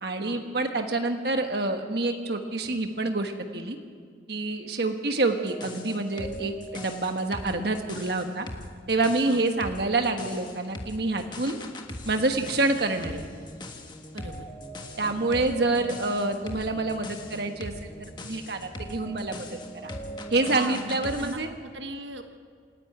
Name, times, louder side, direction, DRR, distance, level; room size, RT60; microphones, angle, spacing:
voice 1, 0.0-3.8 4.3-8.5 8.9-11.6 12.0-13.2 15.0-19.9 20.3-21.5, right 2 dB, 60° right, 5 dB, 1.3 m, -27 dB
sound 1, 5.4-21.3, equal, 25° left, 1.4 m, -40 dB
voice 2, 14.1-14.5 15.0-15.2 20.4-22.2, right 3 dB, 80° right, 6 dB, 1.3 m, -39 dB
27.0 x 11.0 x 9.4 m, 2.1 s
head